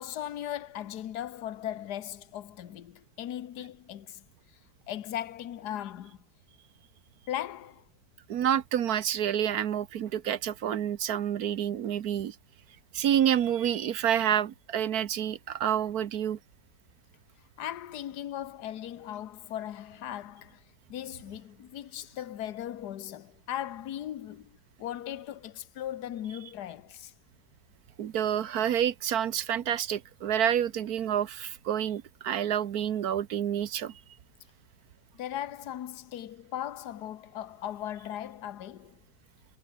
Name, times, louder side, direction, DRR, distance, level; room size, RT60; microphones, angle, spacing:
voice 1, 0.0-4.2 4.9-6.2 7.3-7.9 17.6-20.6 20.9-27.1 35.1-39.0, left 11 dB, 80° left, 1.5 m, -38 dB
voice 2, 8.3-12.3 12.9-16.4 28.0-33.9, right 10 dB, 70° right, 1.4 m, -28 dB
omnidirectional pair, 1.7 m